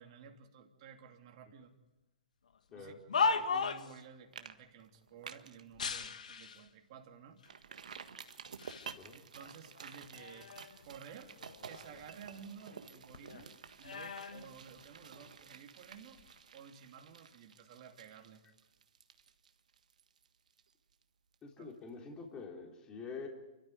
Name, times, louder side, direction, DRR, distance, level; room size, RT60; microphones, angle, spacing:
voice 1, 0.0-1.7 2.7-7.4 9.1-10.5 10.8-11.4 11.6-13.5 13.8-16.2 16.5-18.4 21.6-21.7, right 7 dB, 45° right, 3 dB, 2.8 m, -54 dB
sound 1, 2.7-4.0 5.7-6.7 7.4-7.5 8.3-9.0 9.4-10.9 11.2-12.9 13.1-15.3 16.0-16.3, left 4 dB, 70° left, 1.7 m, -38 dB
sound 2, 3.8-4.0 4.3-4.5 4.8-5.6 6.1-6.2 6.6-6.7 7.5-21.0 21.3-21.4, right 6 dB, 70° right, 1.6 m, -52 dB
voice 2, 21.4-23.3, left 5 dB, 20° left, 1 dB, 3.7 m, -46 dB
29.5 x 13.5 x 9.5 m, 1.1 s
figure-of-eight pair, 125°, 4 cm